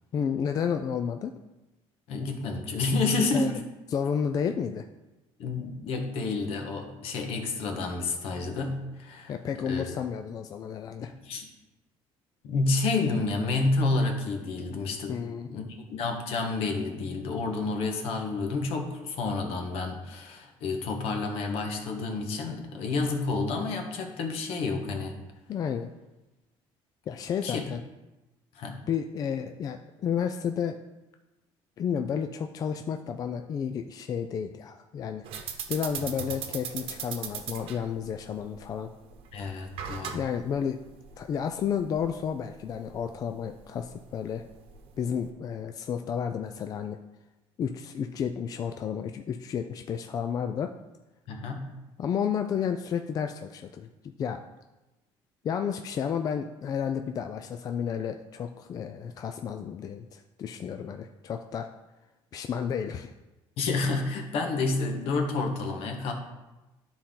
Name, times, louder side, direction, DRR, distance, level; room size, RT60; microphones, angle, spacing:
voice 1, 0.1-1.3 3.3-3.5 3.9-4.8 9.3-11.1 15.1-15.5 25.5-25.9 27.1-27.8 28.9-30.8 31.8-35.3 35.7-38.9 40.1-40.8 41.2-44.4 45.0-47.0 47.6-50.7 52.0-53.9 54.2-54.4 55.4-61.7 62.3-63.1, left 7 dB, 40° left, 6 dB, 0.4 m, -31 dB
voice 2, 2.1-3.5 5.4-9.9 11.0-11.5 12.4-15.2 15.5-15.6 15.9-25.2 27.4-27.6 28.5-28.8 39.3-40.2 51.3-51.7 63.6-66.1, left 3 dB, 70° left, 3 dB, 1.4 m, -29 dB
sound 1, 35.2-45.3, right 8 dB, 65° right, 1.0 m, -40 dB
12.0 x 4.3 x 3.8 m, 1.1 s
cardioid pair, 140°, 10 cm